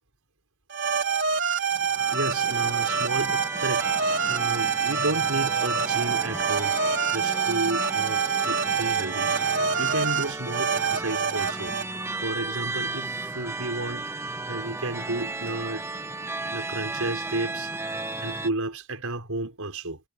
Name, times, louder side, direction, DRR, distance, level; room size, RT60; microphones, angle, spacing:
sound 1, 0.7-11.8, right 6 dB, 55° right, 3.3 m, -26 dB
sound 2, 1.8-18.5, right 2 dB, 10° right, 0.9 m, -34 dB
voice 1, 2.1-3.9 4.3-6.8 7.1-9.3 9.8-11.7 12.2-14.1 14.5-15.8 16.4-17.9 18.2-20.0, right 2 dB, 80° right, 5.3 m, -32 dB
head